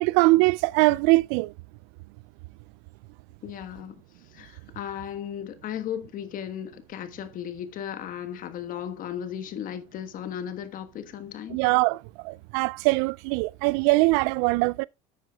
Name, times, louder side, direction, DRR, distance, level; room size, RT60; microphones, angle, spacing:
voice 1, 0.0-1.5 11.5-14.8, right 23 dB, 75° right, 0.4 m, -22 dB
voice 2, 3.4-4.0 4.3-11.6, left 9 dB, 50° left, 1.5 m, -36 dB
10.0 x 9.2 x 2.4 m
supercardioid pair, 95°, 17 cm